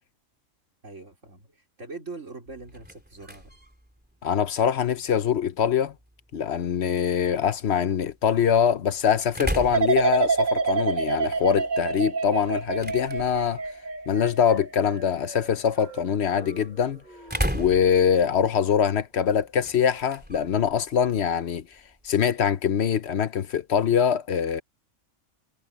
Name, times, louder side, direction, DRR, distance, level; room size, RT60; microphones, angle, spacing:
voice 1, 0.8-3.6, right 3 dB, 65° right, 4.3 m, -42 dB
sound 1, 2.5-22.3, equal, 5° right, 3.4 m, -39 dB
voice 2, 4.2-5.9 6.3-13.6 14.1-17.0 17.5-21.6 22.0-24.6, left 8 dB, 55° left, 1.0 m, -23 dB
sound 2, 9.7-16.7 17.1-17.5, right 4 dB, 35° right, 1.2 m, -28 dB
omnidirectional pair, 1.4 m